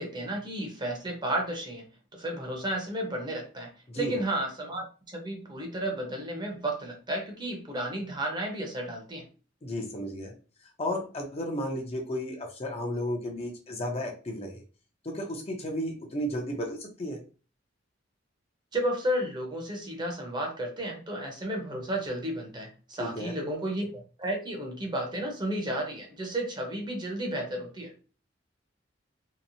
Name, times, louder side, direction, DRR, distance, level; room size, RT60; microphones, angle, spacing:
voice 1, 0.0-1.9 2.1-4.8 5.1-9.3 18.7-27.9, right 1 dB, 25° right, 0.7 m, -32 dB
voice 2, 9.6-10.3 10.8-14.6 15.0-17.2 23.0-23.4, equal, 35° left, 0.6 m, -33 dB
2.8 x 2.1 x 2.6 m
head